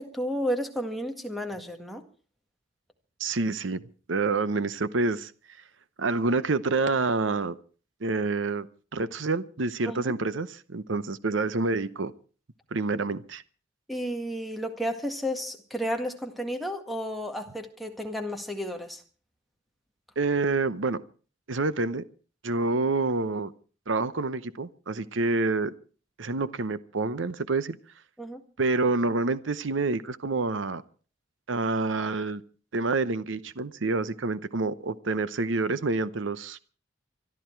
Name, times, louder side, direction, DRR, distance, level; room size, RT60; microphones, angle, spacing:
voice 1, 0.0-2.0 9.9-10.2 13.9-19.0 28.2-28.4, equal, ahead, 1.9 m, -32 dB
voice 2, 3.2-3.8 4.1-5.3 6.0-7.6 8.0-8.7 8.9-12.1 12.7-13.4 20.2-21.0 21.5-22.0 22.4-23.5 23.9-25.7 26.2-27.8 28.6-30.8 31.5-32.4 32.7-36.7, right 3 dB, 75° right, 0.8 m, -27 dB
24.5 x 12.5 x 4.6 m
head